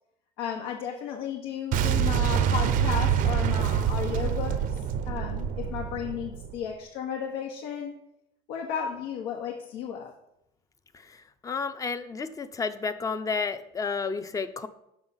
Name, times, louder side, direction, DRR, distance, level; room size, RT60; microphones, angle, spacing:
voice 1, 0.4-4.6 5.1-7.9 8.5-10.1, left 8 dB, 85° left, 0 dB, 1.2 m, -34 dB
Boom, 1.7-6.6, right 9 dB, 55° right, 0.6 m, -26 dB
voice 2, 11.4-14.7, left 5 dB, 20° left, 11 dB, 0.5 m, -31 dB
6.2 x 5.6 x 7.1 m, 0.82 s
cardioid pair, 125°, 17 cm